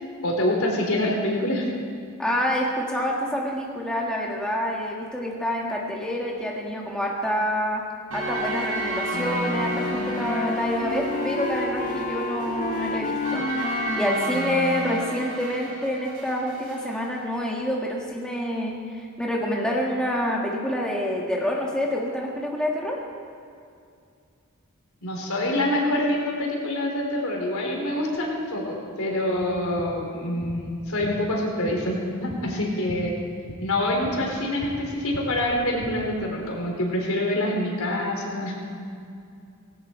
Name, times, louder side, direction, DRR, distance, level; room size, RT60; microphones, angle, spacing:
voice 1, 0.2-1.7 25.0-33.1 33.6-38.5, left 1 dB, 75° left, -1 dB, 3.7 m, -26 dB
voice 2, 2.2-7.8 8.1-23.0, equal, 5° left, -3 dB, 1.7 m, -27 dB
sound 1, 8.1-16.9, equal, 80° right, 3.3 m, -31 dB
Wind instrument woodwind instrument, 9.1-15.0, left 2 dB, 40° left, 0.9 m, -30 dB
sound 2, 29.3-35.9, equal, 90° left, 2.7 m, -41 dB
18.0 x 17.5 x 4.5 m, 2.4 s
head